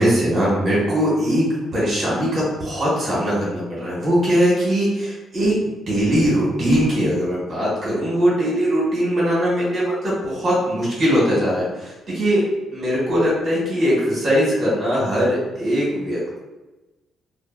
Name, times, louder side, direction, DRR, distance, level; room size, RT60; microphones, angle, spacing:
voice 1, 0.0-1.5 1.7-5.5 5.9-12.4 12.7-16.4, equal, 45° right, -7 dB, 1.4 m, -20 dB
2.6 x 2.5 x 2.5 m, 1.1 s
cardioid pair, 90°, 0 cm